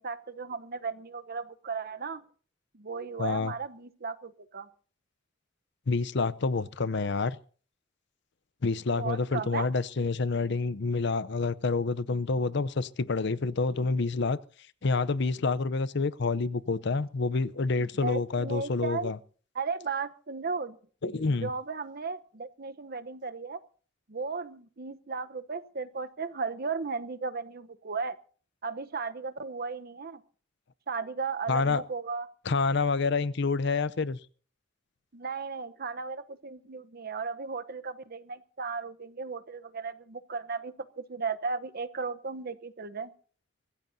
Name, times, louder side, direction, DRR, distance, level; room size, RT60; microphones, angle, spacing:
voice 1, 0.0-2.2 2.7-4.7 9.0-9.7 17.8-19.1 19.5-20.8 21.0-23.6 24.1-28.2 28.6-30.2 30.9-32.3 35.1-43.1, right 4 dB, 50° right, 0.9 m, -35 dB
voice 2, 3.2-3.5 5.9-7.4 8.6-14.4 14.8-19.2 21.0-21.5 31.5-31.8 32.5-34.2, left 4 dB, 60° left, 0.7 m, -28 dB
24.5 x 14.5 x 2.7 m
head